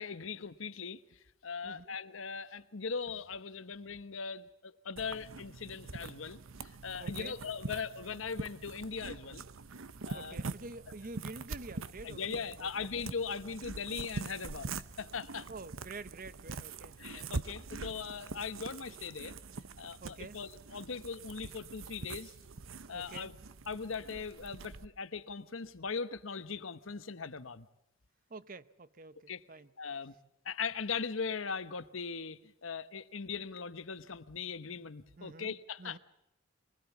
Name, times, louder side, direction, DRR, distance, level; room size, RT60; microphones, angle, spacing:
voice 1, 0.0-9.4 10.0-10.4 12.0-15.5 17.0-19.4 19.8-22.4 22.9-23.4 23.7-27.7 29.3-29.4 29.8-30.1 30.4-36.0, left 5 dB, 80° left, 13 dB, 1.1 m, -40 dB
voice 2, 1.6-2.0 7.0-7.4 10.1-12.9 15.5-17.3 20.0-20.4 22.9-23.3 28.3-29.7 35.2-36.0, right 3 dB, 45° right, 16 dB, 0.7 m, -48 dB
sound 1, 5.0-24.9, right 4 dB, 90° right, 0.8 m, -44 dB
23.5 x 20.0 x 7.1 m, 0.85 s
head